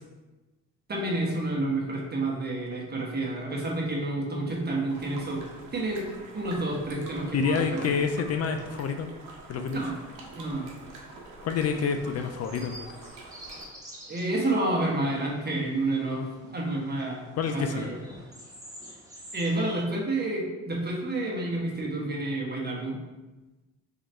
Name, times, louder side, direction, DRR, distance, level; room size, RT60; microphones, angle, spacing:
voice 1, 0.9-5.4 5.7-8.0 9.7-10.0 10.3-10.7 14.1-18.0 19.3-23.0, right 2 dB, 35° right, -2 dB, 1.2 m, -29 dB
sound 1, 4.9-13.7, right 2 dB, 85° right, 0.9 m, -46 dB
voice 2, 7.3-9.1 9.5-9.8 11.4-12.9 17.3-17.9, left 6 dB, 55° left, 6 dB, 0.5 m, -28 dB
sound 2, 11.6-19.8, right 1 dB, 10° right, 1.2 m, -48 dB
3.9 x 3.0 x 4.3 m, 1.1 s
cardioid pair, 90°, 30 cm